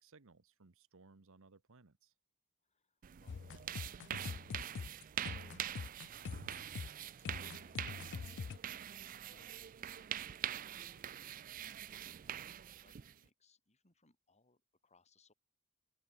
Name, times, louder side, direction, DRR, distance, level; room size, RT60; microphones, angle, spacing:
voice 1, 0.0-2.1, right 3 dB, 65° right, 1.1 m, -63 dB
voice 2, 2.6-5.6 6.0-8.5 9.3-15.3, left 3 dB, 30° left, 6.3 m, -71 dB
sound 1, 3.0-13.2, right 10 dB, 40° right, 0.4 m, -44 dB
sound 2, 3.3-8.6, left 5 dB, 55° left, 0.4 m, -44 dB
open air
head